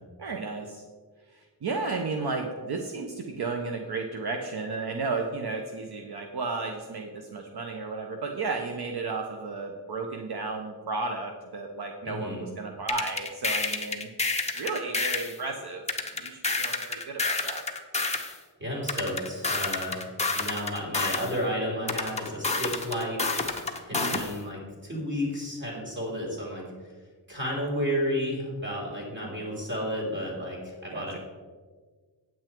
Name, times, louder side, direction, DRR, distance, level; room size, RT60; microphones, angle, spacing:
voice 1, 0.2-0.8 1.3-14.1 14.5-15.8 16.1-17.6 23.9-24.2 30.9-31.2, right 3 dB, 65° right, 3 dB, 0.8 m, -33 dB
voice 2, 12.0-12.5 18.6-20.0 20.3-23.5 23.8-26.7 27.3-31.2, equal, 25° right, -3 dB, 2.8 m, -32 dB
sound 1, 12.9-15.4 15.9-18.3 18.9-21.3 21.9-24.3, left 3 dB, 15° left, 0.8 m, -29 dB
9.2 x 8.0 x 4.5 m, 1.5 s
wide cardioid pair, 175°, 42 cm